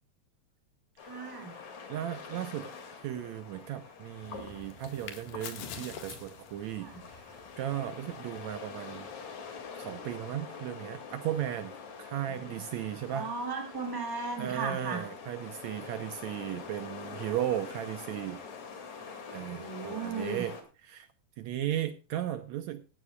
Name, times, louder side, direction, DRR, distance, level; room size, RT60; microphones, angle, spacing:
sound 1, 1.0-20.6, left 5 dB, 60° left, 3.5 m, -45 dB
voice 1, 1.0-1.5 6.8-7.0 12.3-12.6 13.1-15.0 19.5-20.4, right 4 dB, 5° right, 2 dB, 2.5 m, -36 dB
voice 2, 1.5-2.7 3.0-9.1 9.8-11.7 12.0-13.3 14.4-18.4 18.9-20.5 20.8-21.1 21.4-22.8, right 11 dB, 75° right, 10 dB, 1.9 m, -36 dB
sound 2, 4.2-10.0, left 7 dB, 80° left, 3.2 m, -48 dB
16.5 x 14.5 x 2.3 m, 0.33 s
omnidirectional pair, 3.6 m